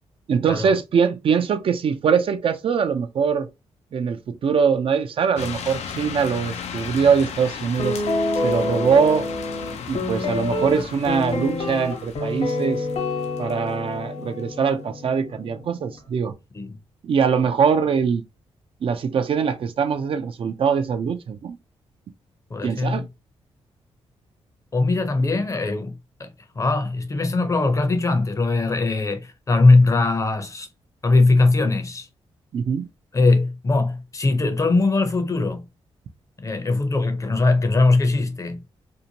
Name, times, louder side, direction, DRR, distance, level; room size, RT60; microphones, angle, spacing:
voice 1, 0.3-3.5 3.9-8.0 8.4-9.2 9.9-12.9 13.4-16.3 17.0-18.2 18.8-21.6 22.6-23.1 25.2-25.3 32.5-32.9, right 6 dB, 55° right, 0.4 m, -22 dB
sound 1, 5.4-14.3, left 7 dB, 85° left, 0.4 m, -36 dB
Guitar, 7.8-16.0, left 2 dB, 70° left, 1.1 m, -27 dB
voice 2, 22.5-23.0 24.7-25.9 26.2-30.7 31.0-32.1 33.1-35.6 36.4-38.6, left 3 dB, 30° left, 0.6 m, -20 dB
2.7 x 2.1 x 2.7 m
cardioid pair, 85°, 11 cm